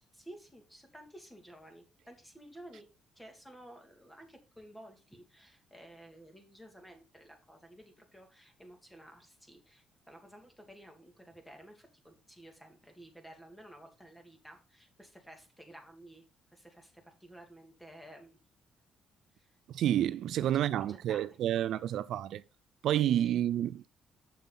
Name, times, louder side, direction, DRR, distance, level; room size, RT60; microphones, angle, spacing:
voice 1, 0.1-2.9 3.2-16.3 16.5-18.4 19.3-19.5 20.4-21.2 23.2-23.3, right 1 dB, 5° left, 2.5 m, -53 dB
voice 2, 19.7-22.4 22.8-23.9, right 11 dB, 75° right, 0.4 m, -29 dB
7.0 x 6.9 x 4.1 m
cardioid pair, 90°, 0 cm